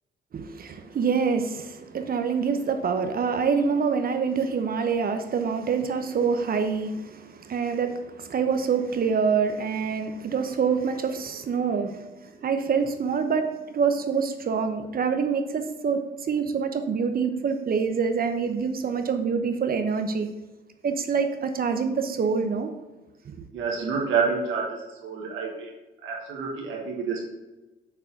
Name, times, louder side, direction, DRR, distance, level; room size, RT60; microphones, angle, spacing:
voice 1, 0.3-12.1 12.4-16.0 16.3-20.3 20.8-22.7 23.3-23.5, right 5 dB, 50° right, 7 dB, 0.9 m, -26 dB
voice 2, 23.5-25.7 26.0-27.2, right 5 dB, 80° right, -1 dB, 1.5 m, -28 dB
6.8 x 4.2 x 5.8 m, 1.1 s
cardioid pair, 90°, 20 cm